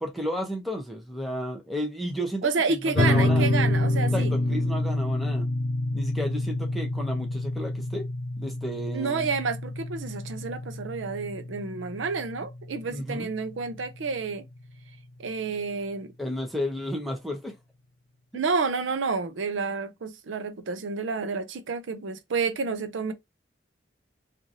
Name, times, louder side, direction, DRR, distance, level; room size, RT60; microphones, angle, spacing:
voice 1, 0.0-3.5 4.1-5.5 5.9-8.1 8.4-9.3 12.9-13.3 16.2-17.6, equal, ahead, 0.7 m, -32 dB
voice 2, 2.4-4.3 8.9-14.4 15.2-16.1 18.3-23.1, right 4 dB, 85° right, 0.5 m, -29 dB
sound 1, 2.9-14.0, left 2 dB, 65° left, 0.6 m, -27 dB
2.9 x 2.5 x 2.6 m
head